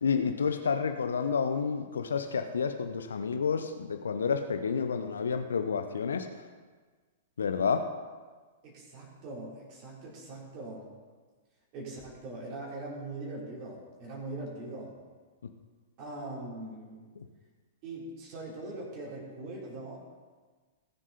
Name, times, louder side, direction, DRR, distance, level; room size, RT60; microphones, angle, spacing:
voice 1, 0.0-6.3 7.4-7.8 17.2-17.3, left 6 dB, 65° left, 8 dB, 0.8 m, -30 dB
voice 2, 8.6-10.9 11.7-14.9 16.0-17.1 17.8-20.0, right 2 dB, 35° right, -4 dB, 3.9 m, -41 dB
19.5 x 7.3 x 4.2 m, 1.4 s
figure-of-eight pair, 105°, 0 cm